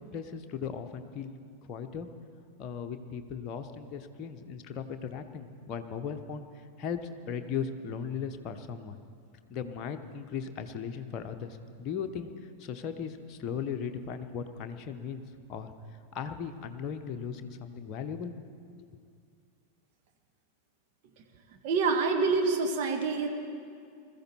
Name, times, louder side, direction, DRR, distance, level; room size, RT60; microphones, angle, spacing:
voice 1, 0.1-1.3 1.7-2.1 2.6-6.5 6.8-7.0 7.3-9.0 9.5-12.3 12.6-15.2 15.5-15.7 16.1-18.3 18.8-18.9, left 7 dB, 35° left, 5 dB, 1.0 m, -37 dB
voice 2, 21.6-23.3, right 4 dB, 45° right, 3 dB, 1.8 m, -26 dB
21.0 x 14.0 x 4.5 m, 2.4 s
figure-of-eight pair, 90°, 0 cm